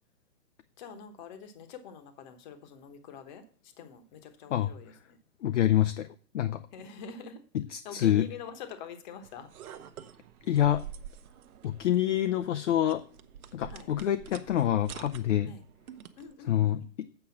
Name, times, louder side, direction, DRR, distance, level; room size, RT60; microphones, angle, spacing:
voice 1, 0.8-5.2 6.7-7.4 7.8-9.5 13.7-13.9 15.4-15.6 16.2-16.9, left 6 dB, 30° left, 1.1 m, -46 dB
voice 2, 5.4-6.1 6.3-6.6 7.5-8.3 10.5-10.9 11.6-13.0 13.5-15.5 16.5-17.1, left 11 dB, 50° left, 0.5 m, -27 dB
sound 1, 9.2-16.3, right 9 dB, 60° right, 1.0 m, -48 dB
7.9 x 5.1 x 7.0 m
hypercardioid pair, 150°, 48 cm